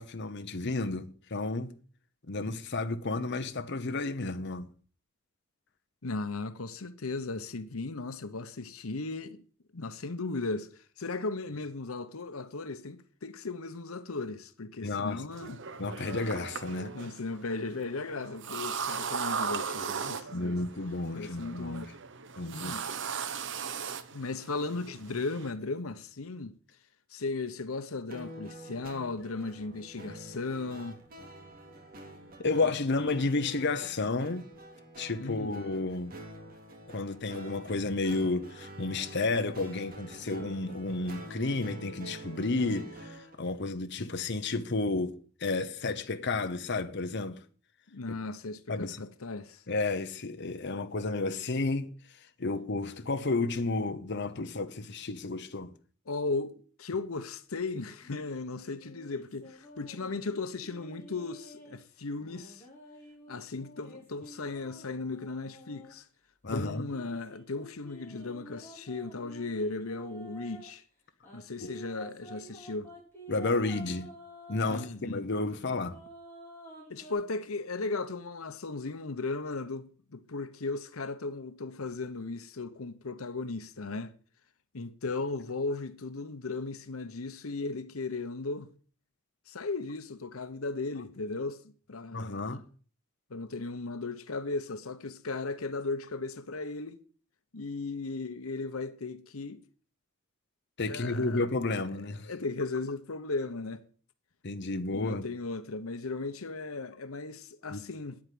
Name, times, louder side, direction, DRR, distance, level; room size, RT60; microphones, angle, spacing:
voice 1, 0.0-1.7 2.3-4.7 14.8-15.2 15.8-16.9 20.3-21.8 22.4-22.8 32.4-34.5 35.0-36.1 36.9-47.4 48.7-49.0 49.7-51.9 52.4-55.7 66.4-66.8 73.3-74.1 74.5-76.0 92.1-92.6 100.8-102.3 104.4-105.2 107.7-107.8, left 3 dB, 55° left, 1.0 m, -32 dB
voice 2, 6.0-9.4 9.7-15.6 16.9-20.6 21.1-21.9 22.5-22.9 24.1-26.5 27.1-31.0 35.2-35.7 47.9-49.6 56.1-62.7 63.3-66.1 66.5-70.8 71.3-72.9 74.7-75.2 76.9-84.1 84.7-88.7 89.5-91.6 91.9-92.6 93.3-97.0 97.5-99.6 100.8-101.8 102.2-103.8 104.9-108.2, left 3 dB, 90° left, 1.0 m, -36 dB
sound 1, 15.3-25.5, right 6 dB, 60° right, 1.0 m, -38 dB
sound 2, 28.1-43.3, right 1 dB, 45° right, 2.8 m, -47 dB
sound 3, 57.6-61.8 62.2-65.9 66.4-70.7 71.2-74.9 75.4-77.1, equal, 10° left, 6.4 m, -50 dB
9.9 x 8.6 x 7.7 m
head